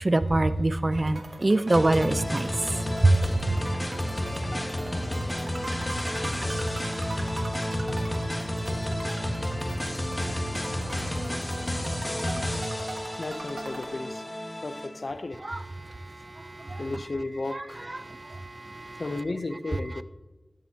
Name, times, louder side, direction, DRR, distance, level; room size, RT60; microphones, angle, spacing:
voice 1, 0.0-2.5 3.0-3.2 15.5-15.6 16.6-16.8 18.0-19.0, right 2 dB, 45° right, 0.5 m, -24 dB
sound 1, 0.9-14.5, right 2 dB, 80° right, 1.2 m, -42 dB
sound 2, 1.7-15.2, equal, 25° left, 1.4 m, -31 dB
voice 2, 13.2-14.2 14.6-15.4 16.8-17.9 19.0-20.0, left 2 dB, 65° left, 0.6 m, -34 dB
12.5 x 7.4 x 2.8 m
cardioid pair, 40°, 0 cm